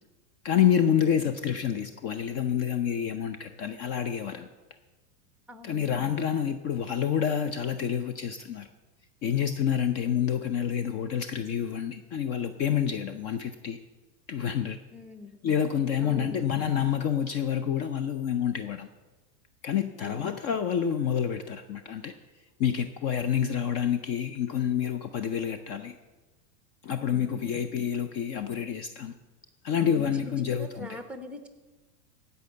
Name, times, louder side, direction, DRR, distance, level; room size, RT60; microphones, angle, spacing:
voice 1, 0.4-4.5 5.6-8.7 9.2-13.8 14.3-14.8 15.4-18.9 19.6-22.1 22.6-25.9 26.8-29.1 29.6-31.0, left 8 dB, 35° left, 10 dB, 0.6 m, -28 dB
voice 2, 5.5-5.9 14.9-15.4 16.0-16.4 19.9-20.4 27.1-27.5 29.8-31.5, left 1 dB, 5° right, 7 dB, 1.0 m, -43 dB
15.5 x 5.6 x 7.8 m, 1.2 s
supercardioid pair, 135°, 47 cm